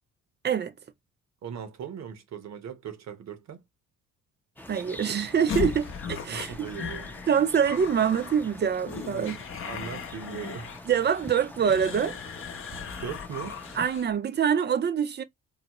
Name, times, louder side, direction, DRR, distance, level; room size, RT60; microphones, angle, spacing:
voice 1, 1.4-3.6 6.3-7.1 9.2-10.8 13.0-13.6, right 8 dB, 60° right, 0.9 m, -39 dB
sound 1, 4.6-13.9, left 1 dB, 5° left, 0.6 m, -45 dB
voice 2, 4.7-6.6 7.3-9.4 10.9-12.2 13.8-15.2, right 7 dB, 35° right, 0.5 m, -25 dB
sound 2, 5.5-14.1, left 6 dB, 45° left, 0.6 m, -37 dB
3.9 x 2.0 x 2.9 m
cardioid pair, 90°, 30 cm